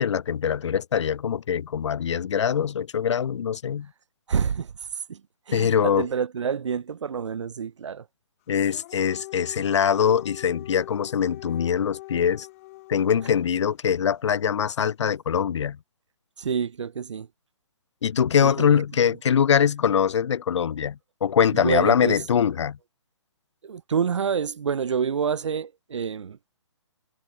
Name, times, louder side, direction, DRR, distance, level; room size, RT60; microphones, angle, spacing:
voice 1, 0.0-3.9 5.5-6.1 8.5-12.5 12.9-15.8 18.0-22.8, left 8 dB, 70° left, 0.4 m, -23 dB
voice 2, 4.3-4.7 5.1-5.2 5.5-8.1 16.4-17.3 18.4-18.8 21.5-22.2 23.6-26.4, right 7 dB, 75° right, 0.6 m, -28 dB
Dog, 8.5-13.7, left 22 dB, 30° left, 0.8 m, -42 dB
hypercardioid pair, 145°, 15 cm